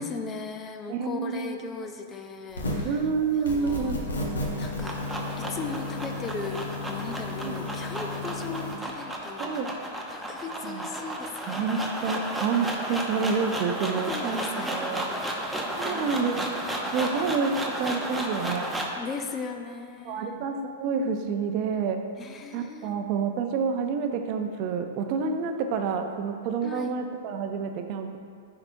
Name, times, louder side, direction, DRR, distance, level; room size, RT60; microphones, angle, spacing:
voice 1, 0.0-3.1 3.5-3.9 4.6-9.5 10.1-11.9 13.9-15.4 15.9-16.3 17.1-17.3 19.0-20.4 22.2-23.0 26.6-27.0, left 5 dB, 25° left, 5 dB, 0.5 m, -38 dB
voice 2, 0.9-1.8 2.8-4.0 7.4-7.7 9.4-9.7 10.6-10.8 11.5-15.1 15.8-16.4 16.9-18.7 20.0-22.0 22.5-28.2, right 5 dB, 45° right, 5 dB, 0.6 m, -28 dB
sound 1, 2.5-3.0 3.4-8.7, left 2 dB, 90° left, 1.3 m, -33 dB
sound 2, 4.4-19.0, right 1 dB, 5° right, 0.8 m, -33 dB
9.7 x 4.8 x 2.7 m, 2.3 s
hypercardioid pair, 115°, 0 cm